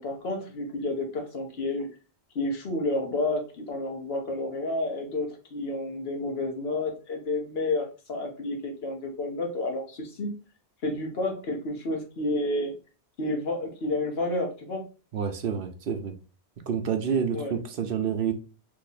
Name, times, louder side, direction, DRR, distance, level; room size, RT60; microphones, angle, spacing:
voice 1, 0.0-1.9 2.3-10.3 10.8-12.7 13.2-14.8 17.3-17.5, left 2 dB, 70° left, 1.1 m, -30 dB
voice 2, 15.1-16.2 16.7-18.3, right 7 dB, 65° right, 0.7 m, -28 dB
2.9 x 2.6 x 3.9 m
omnidirectional pair, 1.1 m